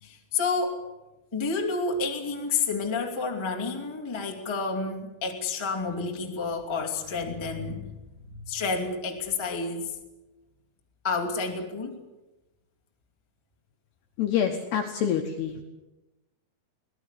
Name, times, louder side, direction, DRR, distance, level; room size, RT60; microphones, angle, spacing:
voice 1, 0.0-0.8 1.3-7.9 8.3-10.0 11.0-12.0, left 4 dB, 15° left, 2 dB, 0.8 m, -30 dB
voice 2, 14.2-15.6, left 8 dB, 70° left, 3 dB, 2.7 m, -27 dB
23.0 x 17.5 x 8.3 m, 1.0 s
omnidirectional pair, 5.9 m